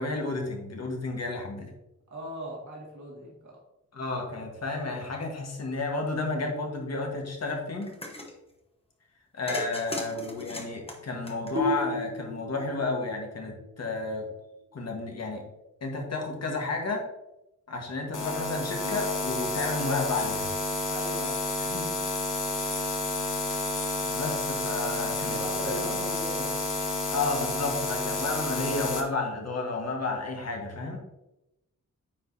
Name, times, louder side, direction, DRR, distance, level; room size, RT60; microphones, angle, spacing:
voice 1, 0.0-1.7 3.9-7.9 9.3-14.3 14.7-15.4 15.8-17.1 17.7-20.5 21.6-21.9 24.1-25.8 27.1-31.0, left 3 dB, 55° left, 1 dB, 1.4 m, -32 dB
voice 2, 2.1-3.6 20.9-21.4 25.3-26.5, equal, 70° right, -4 dB, 2.0 m, -38 dB
sound 1, 7.8-8.3 9.5-12.0, left 1 dB, 20° left, 1.0 m, -38 dB
sound 2, 11.5-14.9, equal, 45° right, 2.0 m, -34 dB
sound 3, 18.1-29.0, left 2 dB, 80° left, 1.1 m, -30 dB
9.1 x 4.7 x 2.7 m, 0.91 s
wide cardioid pair, 140°, 31 cm